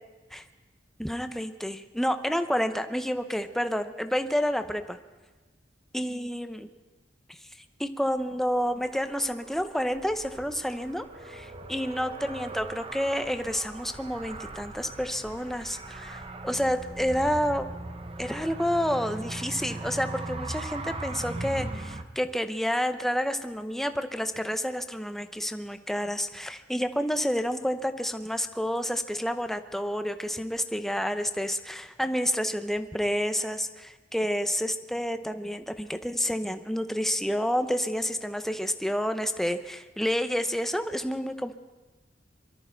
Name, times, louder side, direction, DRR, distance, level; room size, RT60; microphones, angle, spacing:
voice 1, 1.0-5.0 5.9-6.7 7.3-7.4 7.8-17.7 18.2-41.5, equal, ahead, 8 dB, 0.7 m, -29 dB
Car, 8.1-22.0, right 2 dB, 30° right, 0.9 m, -39 dB
23.0 x 13.5 x 4.5 m, 1.2 s
head